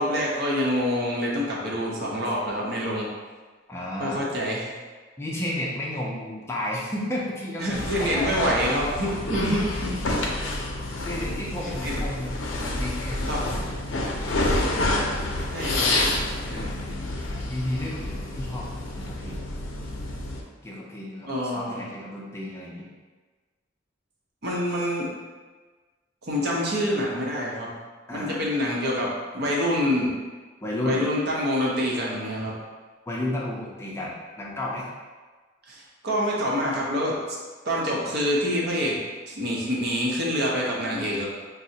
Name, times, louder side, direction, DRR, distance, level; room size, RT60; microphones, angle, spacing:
voice 1, 0.0-3.1 4.0-4.7 7.6-10.3 11.2-11.3 11.8-12.0 13.3-13.5 15.5-16.1 21.3-21.8 24.4-25.1 26.2-27.7 28.1-30.1 30.9-32.5 35.7-37.2 37.6-39.0 39.3-41.3, equal, 55° right, -4 dB, 0.7 m, -26 dB
voice 2, 3.7-4.2 5.2-9.1 11.1-12.4 12.6-13.7 16.5-18.7 18.9-19.4 20.6-22.9 28.1-28.4 30.6-31.0 33.1-34.9, left 1 dB, 15° left, -5 dB, 0.4 m, -33 dB
sound 1, 7.7-20.4, left 2 dB, 80° left, 0.5 m, -28 dB
4.6 x 2.0 x 2.7 m, 1.4 s
head